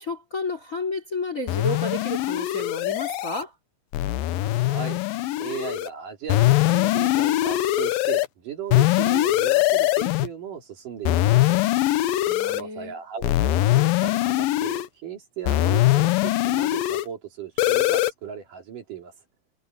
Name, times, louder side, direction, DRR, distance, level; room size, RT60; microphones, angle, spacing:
voice 1, 0.0-3.5 12.3-13.0, left 2 dB, 20° left, 3.0 m, -31 dB
sound 1, 1.5-3.4 3.9-5.9 6.3-8.3 8.7-10.3 11.1-12.6 13.2-14.9 15.5-17.1 17.6-18.1, left 16 dB, 75° left, 2.3 m, -22 dB
voice 2, 4.4-5.0 5.4-11.6 12.4-19.1, right 8 dB, 55° right, 4.3 m, -37 dB
omnidirectional pair, 4.7 m